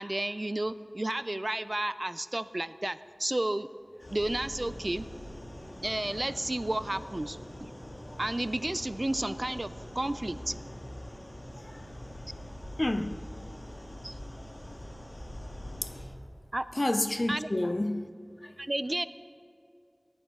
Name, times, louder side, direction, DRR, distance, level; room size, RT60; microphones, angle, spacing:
voice 1, 0.0-3.7 4.1-5.1 5.8-7.7 8.2-10.6 14.0-14.1 16.5-16.7 17.3-17.5 18.6-19.1, right 1 dB, 40° right, 0.4 m, -32 dB
sound 1, 4.0-16.0, equal, 80° left, 2.6 m, -43 dB
voice 2, 12.8-13.2 15.8-15.9 16.8-18.1 18.4-18.5, left 1 dB, 40° left, 0.5 m, -29 dB
18.0 x 11.0 x 3.7 m
wide cardioid pair, 45°, 0 cm